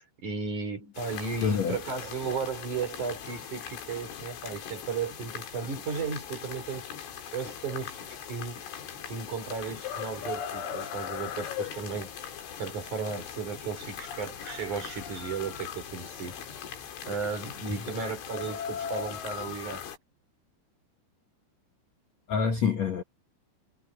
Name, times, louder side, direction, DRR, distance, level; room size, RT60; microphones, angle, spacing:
voice 1, 0.0-6.9 7.3-8.0 8.3-8.6 9.1-12.2 12.6-16.4 17.0-19.9, right 5 dB, 40° right, 5.8 m, -35 dB
sound 1, 0.9-20.0, left 8 dB, 75° left, 5.8 m, -39 dB
voice 2, 1.4-1.8 22.3-23.0, left 6 dB, 90° left, 1.5 m, -26 dB
omnidirectional pair, 5.6 m